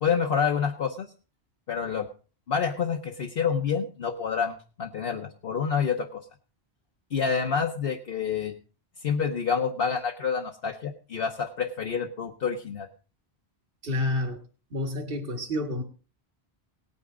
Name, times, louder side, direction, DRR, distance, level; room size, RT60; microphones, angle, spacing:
voice 1, 0.0-1.1 1.7-2.1 2.5-6.2 7.1-8.5 9.0-12.9, left 6 dB, 60° left, 3 dB, 1.1 m, -28 dB
voice 2, 13.8-14.4 14.7-15.8, left 2 dB, 55° right, 5 dB, 1.8 m, -29 dB
18.0 x 9.4 x 3.8 m, 0.36 s
omnidirectional pair, 1.1 m